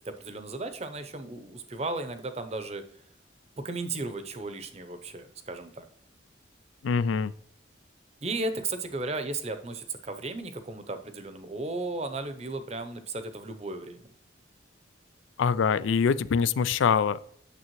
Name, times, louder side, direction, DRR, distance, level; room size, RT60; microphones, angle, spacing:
voice 1, 0.0-2.8 3.6-5.8 8.2-14.1, right 2 dB, 35° right, 9 dB, 0.7 m, -35 dB
voice 2, 6.8-7.3 15.4-17.2, left 6 dB, 80° left, 17 dB, 0.3 m, -24 dB
9.1 x 6.7 x 3.1 m, 0.69 s
head